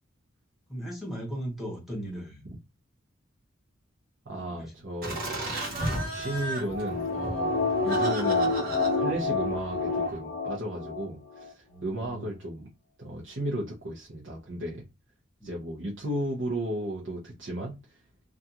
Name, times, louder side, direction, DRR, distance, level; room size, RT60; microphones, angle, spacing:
voice 1, 0.7-2.4 4.4-4.7 5.2-5.4 5.7-5.9 11.7-12.3 15.4-15.6, right 1 dB, ahead, 1.0 m, -38 dB
voice 2, 4.3-5.2 5.8-12.7 13.0-14.8 15.4-18.0, right 1 dB, 65° right, 0.7 m, -34 dB
Laughter, 5.0-10.2, right 1 dB, 45° right, 1.1 m, -35 dB
sound 1, 6.3-11.0 11.4-11.5, left 3 dB, 50° left, 0.4 m, -28 dB
2.5 x 2.3 x 2.7 m
head